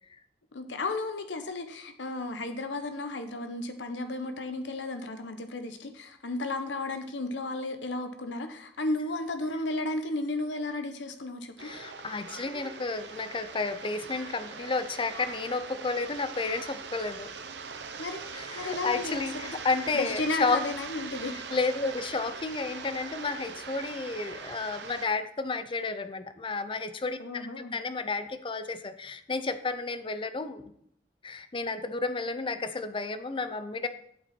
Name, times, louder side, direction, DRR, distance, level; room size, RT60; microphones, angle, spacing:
voice 1, 0.5-11.7 18.0-18.2 18.5-19.5 19.9-21.3 27.2-27.8, left 2 dB, 85° left, 7 dB, 0.9 m, -34 dB
voice 2, 11.6-17.3 18.3-20.6 21.5-30.7 31.2-33.9, left 3 dB, 30° left, 11 dB, 0.6 m, -32 dB
sound 1, 11.6-25.1, right 5 dB, 70° right, 0.8 m, -41 dB
8.3 x 7.3 x 4.3 m, 0.69 s
head